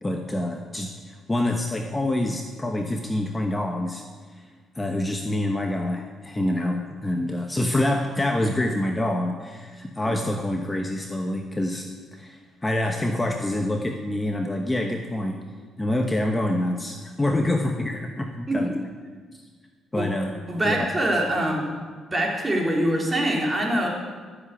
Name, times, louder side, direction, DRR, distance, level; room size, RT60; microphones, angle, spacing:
voice 1, 0.0-4.0 4.3-4.4 4.8-15.4 15.8-18.7 19.9-20.3 20.6-20.9, left 1 dB, 15° left, 3 dB, 1.1 m, -26 dB
voice 2, 20.5-21.8 22.1-23.9, right 1 dB, 20° right, -1 dB, 3.4 m, -24 dB
13.5 x 7.6 x 8.3 m, 1.5 s
cardioid pair, 90°, 0 cm